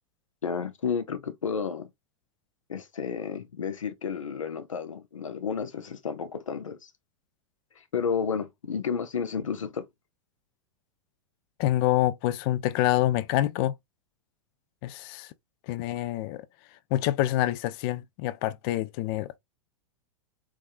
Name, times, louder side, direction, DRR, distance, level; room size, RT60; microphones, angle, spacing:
voice 1, 0.4-1.9 2.7-6.9 7.8-9.9, left 6 dB, 85° left, 0.7 m, -31 dB
voice 2, 11.6-13.7 14.8-15.3 15.7-16.5 16.9-19.4, left 14 dB, 45° left, 0.4 m, -26 dB
3.6 x 3.2 x 2.5 m
hypercardioid pair, 100°, 16 cm